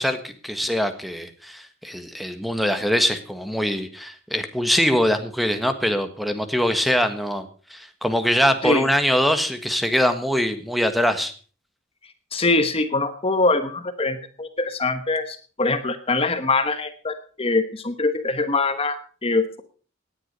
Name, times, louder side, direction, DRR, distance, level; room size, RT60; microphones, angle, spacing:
voice 1, 0.0-11.3, equal, ahead, 9 dB, 1.5 m, -23 dB
voice 2, 12.3-19.6, left 3 dB, 30° left, 10 dB, 1.1 m, -23 dB
18.0 x 10.0 x 5.4 m, 0.39 s
head